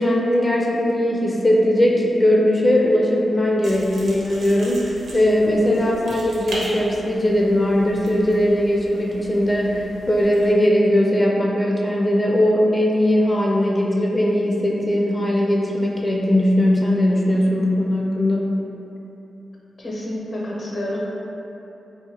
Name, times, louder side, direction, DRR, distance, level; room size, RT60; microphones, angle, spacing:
voice 1, 0.0-18.5, left 1 dB, 20° left, -2 dB, 0.4 m, -19 dB
sound 1, 3.6-10.5, right 1 dB, 75° right, 0.8 m, -38 dB
voice 2, 19.8-21.0, left 1 dB, 50° left, -5 dB, 0.8 m, -29 dB
2.8 x 2.5 x 4.0 m, 2.9 s
wide cardioid pair, 95°, 0 cm